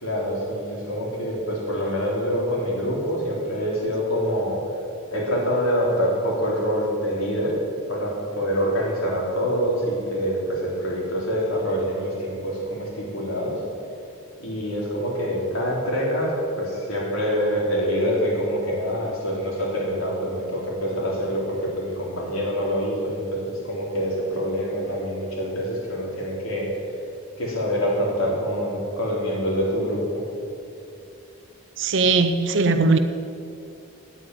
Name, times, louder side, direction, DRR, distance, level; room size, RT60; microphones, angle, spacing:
voice 1, 0.0-4.6 5.1-7.6 7.9-13.6 14.4-26.7 27.4-30.2, equal, 75° left, -4 dB, 3.9 m, -25 dB
voice 2, 31.8-33.0, right 3 dB, 60° right, 9 dB, 0.7 m, -19 dB
9.4 x 8.9 x 9.5 m, 2.5 s
head